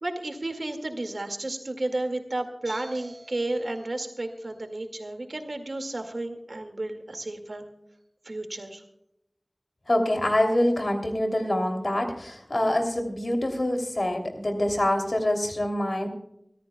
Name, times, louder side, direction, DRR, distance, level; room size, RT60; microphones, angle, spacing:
voice 1, 0.0-7.7 8.2-8.8, right 2 dB, 85° right, 5 dB, 2.0 m, -32 dB
voice 2, 9.9-16.1, left 1 dB, 60° left, 4 dB, 2.9 m, -25 dB
24.5 x 14.0 x 2.3 m, 0.78 s
wide cardioid pair, 40°, 0 cm